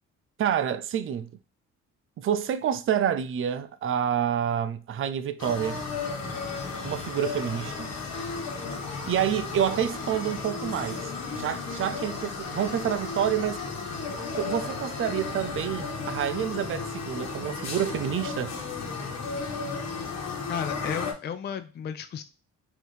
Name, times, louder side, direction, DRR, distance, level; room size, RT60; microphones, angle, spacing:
voice 1, 0.4-1.3 2.2-5.8 6.8-7.9 8.9-11.1 11.3-13.6 14.3-18.6, right 9 dB, 45° right, 0.5 m, -28 dB
sound 1, 5.4-21.1, left 4 dB, 60° left, 1.3 m, -34 dB
voice 2, 20.5-22.2, left 8 dB, 35° left, 0.4 m, -33 dB
4.4 x 2.9 x 3.2 m
cardioid pair, 90°, 30 cm